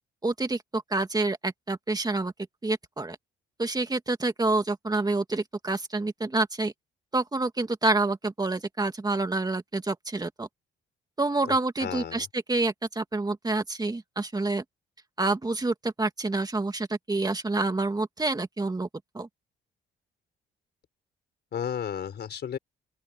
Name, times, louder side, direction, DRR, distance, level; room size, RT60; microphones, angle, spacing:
voice 1, 0.2-2.3 2.6-3.2 3.6-6.7 7.1-10.5 11.2-14.6 15.2-18.9 19.1-19.3, right 2 dB, 20° right, 2.3 m, -28 dB
voice 2, 11.4-12.3 21.5-22.6, left 8 dB, 55° left, 4.1 m, -34 dB
open air
cardioid pair, 90°, 20 cm